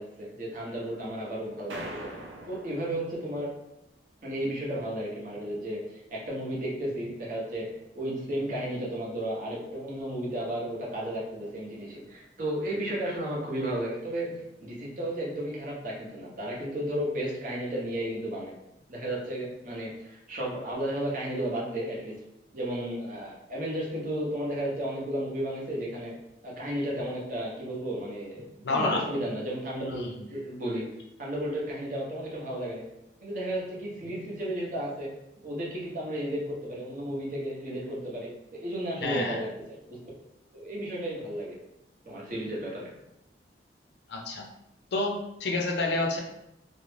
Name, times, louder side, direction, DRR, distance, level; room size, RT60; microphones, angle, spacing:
voice 1, 0.0-2.1 2.4-3.5 4.2-7.7 7.9-18.5 18.9-22.1 22.5-26.1 26.4-30.8 31.2-32.9 33.2-35.1 35.4-39.5 40.5-41.6 42.0-42.9, right 1 dB, 50° right, -4 dB, 0.8 m, -33 dB
sound 1, 1.7-3.7, right 1 dB, 90° right, 0.4 m, -42 dB
voice 2, 28.6-29.0 29.9-30.3 39.0-39.4 44.1-44.4 44.9-46.2, left 2 dB, 70° left, 1 dB, 0.5 m, -29 dB
2.5 x 2.0 x 3.1 m, 0.86 s
head